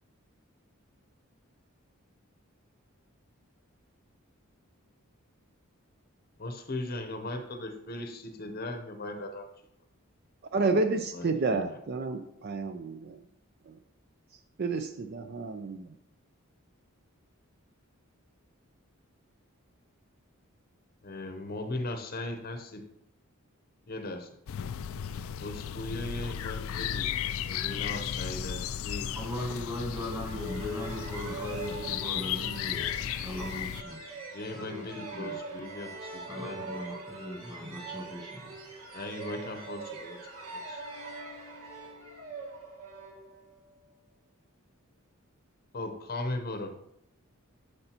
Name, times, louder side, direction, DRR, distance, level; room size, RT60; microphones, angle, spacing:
voice 1, 6.4-9.5 11.1-11.8 21.0-22.8 23.9-24.3 25.4-27.1 27.5-29.1 34.3-36.6 38.9-40.2 40.5-40.8 45.7-46.7, left 2 dB, 45° left, 6 dB, 0.8 m, -38 dB
voice 2, 10.5-13.2 14.6-15.9, right 3 dB, 45° right, 8 dB, 0.4 m, -30 dB
sound 1, 24.5-33.8, left 9 dB, 70° left, 0.4 m, -35 dB
voice 3, 29.1-34.0 34.5-34.8 35.1-35.4 36.2-38.5, left 1 dB, 15° right, 1 dB, 1.8 m, -38 dB
sound 2, 30.3-43.8, right 3 dB, 75° right, 2.3 m, -43 dB
12.0 x 6.6 x 2.9 m, 0.76 s
head